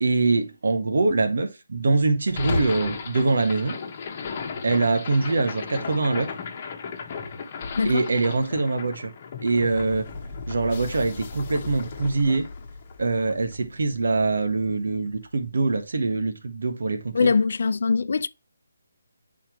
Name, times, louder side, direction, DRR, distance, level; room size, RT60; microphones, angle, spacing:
voice 1, 0.0-3.8 4.6-6.3 7.8-9.1 9.4-10.1 10.5-12.4 13.0-17.3, right 3 dB, 65° right, 1.4 m, -23 dB
sound 1, 2.3-14.5, left 4 dB, 30° left, 1.2 m, -35 dB
voice 2, 17.1-18.3, left 5 dB, 60° left, 0.5 m, -22 dB
8.8 x 4.2 x 3.1 m
hypercardioid pair, 165°, 0 cm